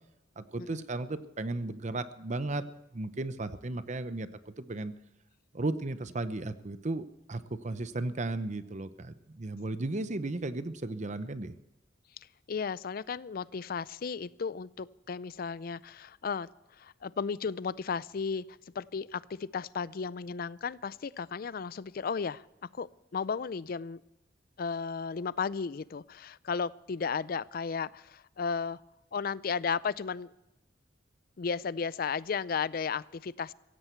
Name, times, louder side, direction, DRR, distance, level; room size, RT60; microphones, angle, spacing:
voice 1, 0.4-2.6 2.9-4.9 5.5-11.5, right 2 dB, 40° right, 12 dB, 0.8 m, -35 dB
voice 2, 12.5-16.5 16.8-18.4 18.7-22.4 22.8-24.0 24.6-28.8 29.1-30.3 31.4-33.5, left 5 dB, 50° left, 20 dB, 0.4 m, -34 dB
16.0 x 16.0 x 4.5 m, 0.94 s
head